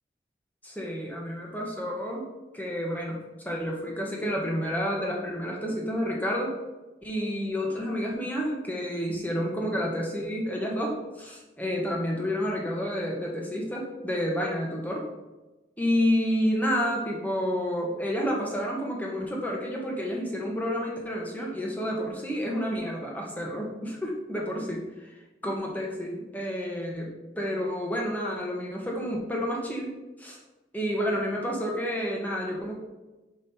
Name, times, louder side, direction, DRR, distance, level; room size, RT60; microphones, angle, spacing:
voice 1, 0.6-2.3 2.5-6.5 7.0-15.0 15.8-25.1 25.4-29.9 30.2-30.4 30.7-32.8, equal, 10° left, -2 dB, 1.1 m, -30 dB
5.4 x 5.0 x 4.4 m, 1.1 s
head